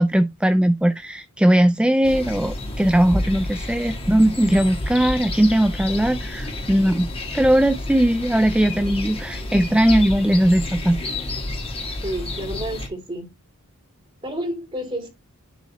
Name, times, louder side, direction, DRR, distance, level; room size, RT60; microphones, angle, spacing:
voice 1, 0.0-7.1 7.3-11.0, right 1 dB, 5° right, 0.3 m, -19 dB
sound 1, 2.0-12.9, left 1 dB, 25° left, 1.6 m, -30 dB
voice 2, 12.0-13.3 14.2-15.1, equal, 25° right, 3.1 m, -30 dB
10.0 x 4.1 x 3.0 m
head